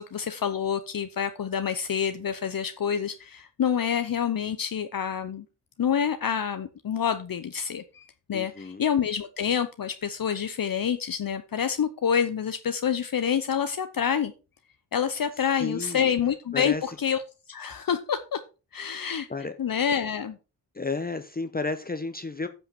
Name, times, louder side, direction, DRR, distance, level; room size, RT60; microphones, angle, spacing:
voice 1, 0.0-5.5 5.8-14.3 14.9-17.2 17.5-18.4 18.7-19.3 19.6-20.4, left 8 dB, 55° left, 0.8 m, -27 dB
voice 2, 8.3-8.8 15.5-16.1 16.5-16.8 19.0-19.6 20.7-22.5, left 3 dB, 20° left, 0.9 m, -32 dB
10.0 x 5.7 x 4.3 m
cardioid pair, 55°, 41 cm